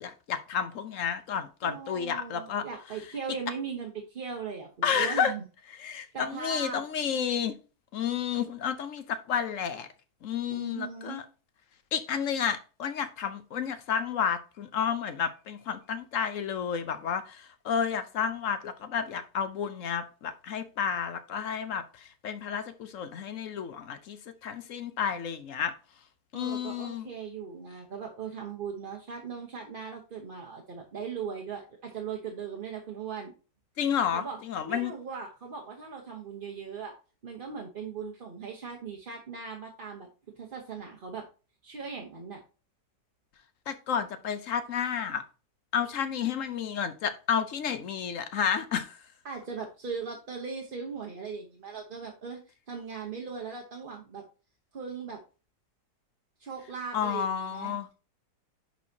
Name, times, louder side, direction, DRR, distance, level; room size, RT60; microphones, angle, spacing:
voice 1, 0.0-2.6 4.8-5.3 5.7-7.6 7.9-9.9 10.2-11.2 11.9-25.7 26.3-27.1 33.8-34.9 43.7-45.2 45.7-49.0 56.9-57.9, left 7 dB, 60° left, 0.9 m, -31 dB
voice 2, 1.6-5.4 6.1-6.8 10.5-11.2 26.3-33.3 34.1-34.4 34.6-36.9 37.2-40.1 40.3-41.2 41.6-42.4 49.2-52.4 52.7-54.2 54.7-55.2 56.4-57.9, right 6 dB, 35° right, 1.0 m, -39 dB
10.5 x 4.5 x 2.8 m
omnidirectional pair, 1.9 m